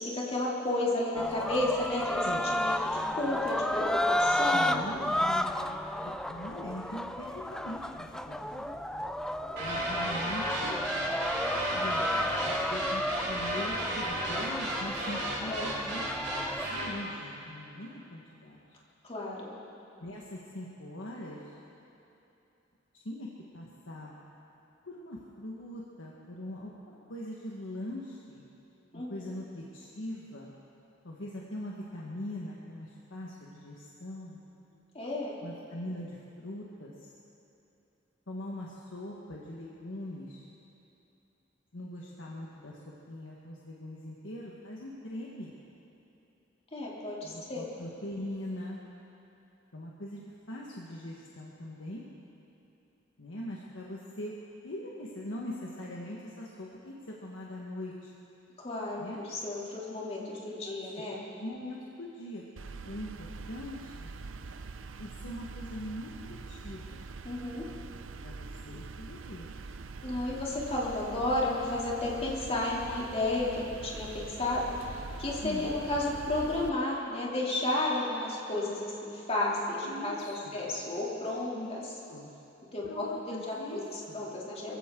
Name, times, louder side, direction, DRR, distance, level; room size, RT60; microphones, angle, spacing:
voice 1, 0.0-2.3 2.5-4.8 15.5-15.7 19.0-19.5 28.9-29.2 34.9-35.4 46.7-47.7 58.6-61.2 67.2-67.6 70.0-81.8 82.7-83.6 84.1-84.7, left 2 dB, 30° left, -5 dB, 2.9 m, -32 dB
sound 1, 1.1-16.7, left 1 dB, 5° left, 0.3 m, -32 dB
voice 2, 4.5-5.7 6.0-8.8 9.6-10.8 11.7-12.1 12.4-16.1 16.7-18.6 20.0-21.5 22.9-23.3 23.5-24.1 24.8-28.4 28.9-30.5 31.0-34.4 35.4-37.1 38.3-40.5 41.7-45.5 47.2-48.8 49.7-52.1 53.2-54.3 54.6-58.1 59.0-59.2 60.6-60.7 61.4-62.4 62.8-64.1 65.0-67.1 68.2-69.5 75.4-75.7 79.8-80.7 81.5-82.3 82.8-84.3, left 1 dB, 75° left, -4 dB, 1.5 m, -42 dB
sound 2, 9.6-17.0, right 1 dB, 60° right, 4.1 m, -34 dB
sound 3, 62.6-76.7, right 4 dB, 85° right, 0.6 m, -44 dB
23.0 x 16.0 x 3.8 m, 2.9 s
head